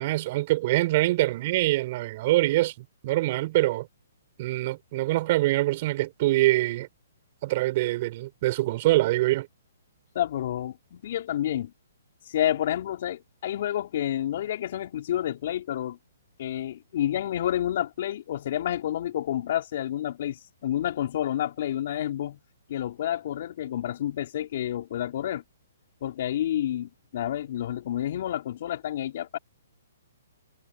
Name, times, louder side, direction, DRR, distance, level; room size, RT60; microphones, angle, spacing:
voice 1, 0.0-3.9 4.4-6.9 7.4-9.5, right 17 dB, 45° right, 6.9 m, -24 dB
voice 2, 10.2-11.7 12.3-16.0 16.4-22.4 22.7-25.4 26.0-29.4, left 11 dB, 55° left, 3.7 m, -29 dB
hypercardioid pair, 135°, 0 cm